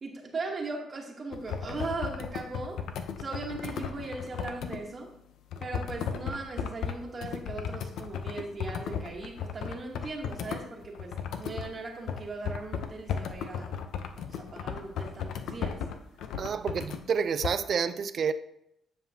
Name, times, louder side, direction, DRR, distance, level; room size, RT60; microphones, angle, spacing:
voice 1, 0.0-2.8 3.2-5.1 5.6-13.7 14.3-15.8, right 3 dB, 40° right, 1.2 m, -38 dB
sound 1, 1.3-4.8 5.5-11.7 12.1-17.0 17.4-17.5, left 7 dB, 80° left, 0.6 m, -35 dB
voice 2, 16.4-18.3, right 6 dB, 55° right, 0.4 m, -29 dB
9.4 x 5.4 x 2.8 m
cardioid pair, 90°, 0 cm